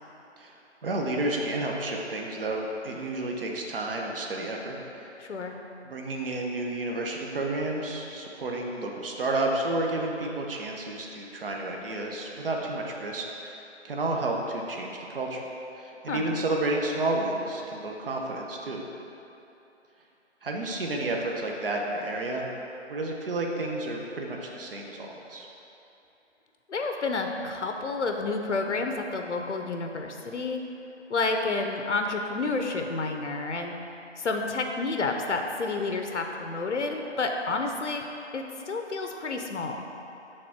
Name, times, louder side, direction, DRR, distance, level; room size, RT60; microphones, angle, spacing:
voice 1, 0.8-5.1 5.8-15.4 15.7-18.8 20.4-22.5 22.9-25.5, right 2 dB, 50° right, 0 dB, 0.9 m, -31 dB
voice 2, 5.2-5.5 16.1-16.2 26.7-30.6 31.1-33.7 34.2-38.0 38.3-39.8, left 3 dB, 80° left, 4 dB, 0.8 m, -30 dB
6.6 x 3.7 x 5.9 m, 2.9 s
hypercardioid pair, 165°, 35 cm